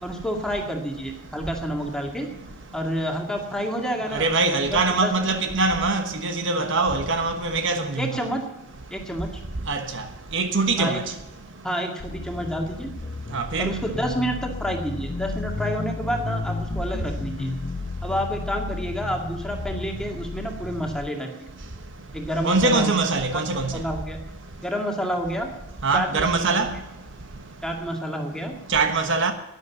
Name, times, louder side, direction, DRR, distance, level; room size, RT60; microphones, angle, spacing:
voice 1, 0.0-2.3 2.7-4.3 4.7-5.3 8.0-8.4 8.9-9.3 10.8-11.0 11.6-12.9 13.6-17.5 18.0-21.5 22.1-23.4 23.7-24.2 24.6-25.5 25.9-26.6 27.6-28.5, equal, 5° left, 2.1 m, -29 dB
voice 2, 4.1-8.3 9.7-10.1 10.3-11.0 13.3-13.8 22.4-23.7 25.8-26.7 28.7-29.3, right 3 dB, 60° right, 1.2 m, -23 dB
sound 1, 12.0-21.1, left 3 dB, 30° left, 0.4 m, -33 dB
11.5 x 10.5 x 7.2 m
head